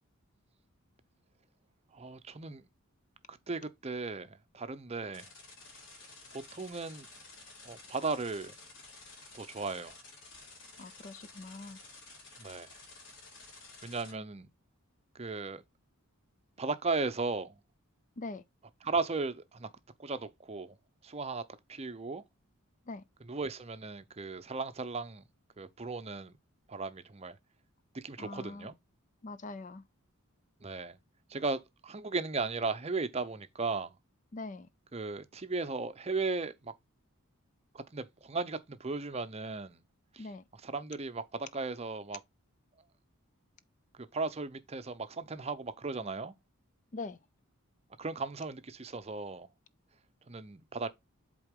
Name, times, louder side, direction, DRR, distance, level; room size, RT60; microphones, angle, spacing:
voice 1, 1.9-2.6 3.3-5.3 6.5-7.1 7.6-8.5 9.3-10.0 12.4-12.7 13.8-14.5 15.1-15.6 16.6-17.6 18.8-19.7 20.0-20.7 21.0-21.4 21.7-22.2 23.2-25.2 25.6-26.3 26.7-27.4 27.9-28.7 30.6-31.0 31.3-33.9 34.9-36.7 37.7-39.8 40.1-42.2 44.0-46.3 48.0-49.5 50.3-50.9, right 3 dB, 30° right, 0.6 m, -36 dB
sound 1, 5.1-14.1, left 3 dB, 60° left, 4.0 m, -52 dB
voice 2, 10.8-11.8 18.2-18.4 22.9-23.0 28.2-28.7 29.2-29.8 34.3-34.7 40.2-40.4 46.9-47.2, left 3 dB, 35° left, 0.4 m, -42 dB
8.1 x 3.7 x 3.6 m
head